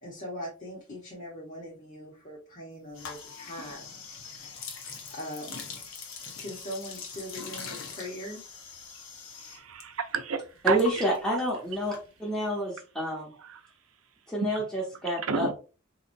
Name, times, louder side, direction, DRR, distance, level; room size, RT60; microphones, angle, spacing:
voice 1, 0.0-3.9 4.3-4.6 5.1-5.6 6.4-8.4, left 1 dB, 40° left, -5 dB, 1.0 m, -41 dB
sound 1, 2.9-9.8 10.1-12.5, left 5 dB, 60° left, 0.8 m, -43 dB
voice 2, 9.5-10.8 13.5-13.6 15.3-15.5, right 5 dB, 65° right, 8 dB, 0.6 m, -30 dB
voice 3, 10.6-11.9 12.2-13.3 14.3-15.5, equal, 5° left, -5 dB, 0.8 m, -28 dB
3.9 x 2.9 x 2.6 m, 0.34 s
head